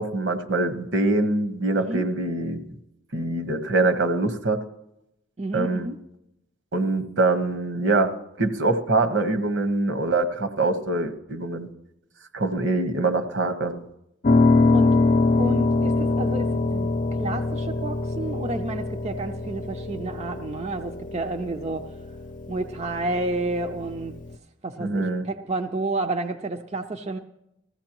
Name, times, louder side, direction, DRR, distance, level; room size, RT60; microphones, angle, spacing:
voice 1, 0.0-2.6 3.1-4.6 5.5-5.9 6.7-11.7 12.3-13.8 24.8-25.2, right 2 dB, 65° right, 7 dB, 1.2 m, -24 dB
voice 2, 1.7-2.1 5.4-6.0 14.7-15.0 15.4-16.9 17.2-22.0 22.5-24.2 24.6-27.2, right 2 dB, 35° right, 5 dB, 0.5 m, -30 dB
Piano, 14.2-24.4, left 3 dB, 40° left, 0.5 m, -24 dB
19.5 x 15.0 x 3.0 m, 0.83 s
head